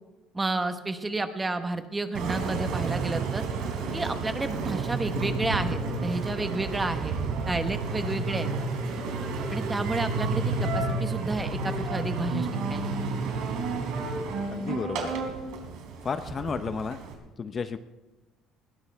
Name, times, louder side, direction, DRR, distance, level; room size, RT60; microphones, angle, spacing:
voice 1, 0.3-3.5 3.9-7.1 7.5-8.5 9.5-12.8, right 2 dB, 15° right, 8 dB, 1.2 m, -31 dB
Engine, 2.1-17.1, right 3 dB, 80° right, 3.5 m, -31 dB
voice 2, 14.5-15.1 16.0-17.0 17.4-17.8, left 5 dB, 30° left, 10 dB, 0.6 m, -32 dB
20.5 x 16.5 x 3.5 m, 1.1 s
cardioid pair, 135°, 0 cm